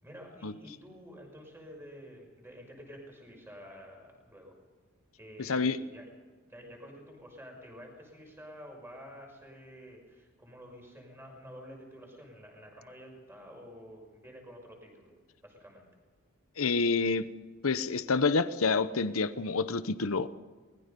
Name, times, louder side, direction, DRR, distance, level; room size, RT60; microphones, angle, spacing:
voice 1, 0.0-4.6 5.2-6.0 6.5-15.1 15.4-15.9, equal, 10° right, 1 dB, 6.1 m, -49 dB
voice 2, 5.4-5.8 16.6-17.2 17.6-20.3, left 4 dB, 85° left, 13 dB, 0.9 m, -28 dB
24.0 x 20.5 x 5.3 m, 1.4 s
head